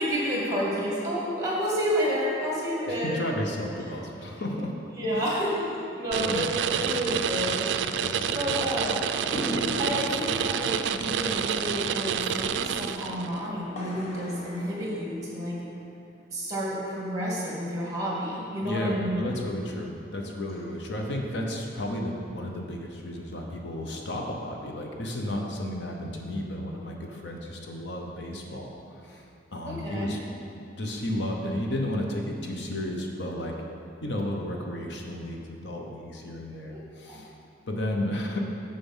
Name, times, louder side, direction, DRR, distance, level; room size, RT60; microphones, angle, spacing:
voice 1, 0.0-3.2 4.9-6.4 6.8-7.7 8.3-9.1 9.8-15.6 16.3-19.3 29.6-30.2 36.7-36.8 37.1-37.2, equal, 20° right, -5 dB, 2.0 m, -30 dB
voice 2, 2.9-4.7 5.1-5.2 6.2-7.1 8.0-9.0 18.6-29.3 29.5-30.2 30.8-33.5 34.0-37.3 37.7-38.4, left 1 dB, 65° left, 1 dB, 0.9 m, -33 dB
sound 1, 6.1-13.4, right 8 dB, 70° right, 0.3 m, -28 dB
sound 2, 9.3-15.8, equal, 35° left, 1.2 m, -38 dB
7.1 x 6.8 x 5.6 m, 2.5 s
head